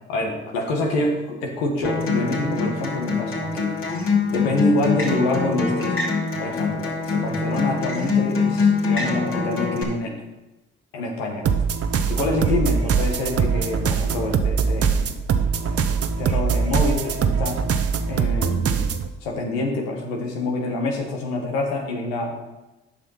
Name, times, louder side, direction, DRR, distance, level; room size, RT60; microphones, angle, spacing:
voice 1, 0.1-3.8 4.3-6.0 6.4-10.2 10.9-11.4 12.1-15.2 15.6-15.8 16.2-17.6 18.1-18.9 19.2-22.4, left 2 dB, 90° left, 1 dB, 1.4 m, -26 dB
Acoustic guitar, 1.8-9.8, left 4 dB, 45° left, 2.6 m, -23 dB
sound 1, 11.4-19.1, right 6 dB, 50° right, 0.8 m, -22 dB
8.4 x 5.8 x 5.7 m, 1.0 s
hypercardioid pair, 55°, 30 cm